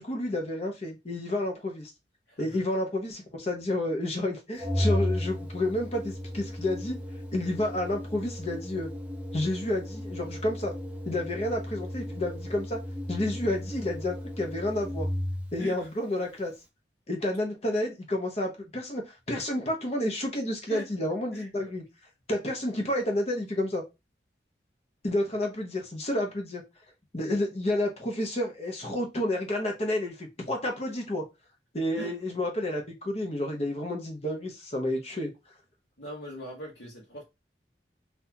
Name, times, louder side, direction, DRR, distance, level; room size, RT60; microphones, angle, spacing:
voice 1, 0.0-1.9 2.4-7.0 7.3-8.9 9.3-10.7 11.0-12.8 13.1-15.1 15.5-16.5 17.1-21.8 22.3-23.8 25.0-26.6 27.1-31.2 31.7-35.3, left 1 dB, 35° left, 0.9 m, -30 dB
Organ, 4.6-15.6, left 1 dB, 10° right, 0.6 m, -34 dB
voice 2, 15.6-15.9 20.7-20.8 21.3-21.6 32.0-32.1 36.0-37.2, equal, 80° left, 1.1 m, -40 dB
4.0 x 2.6 x 2.8 m
head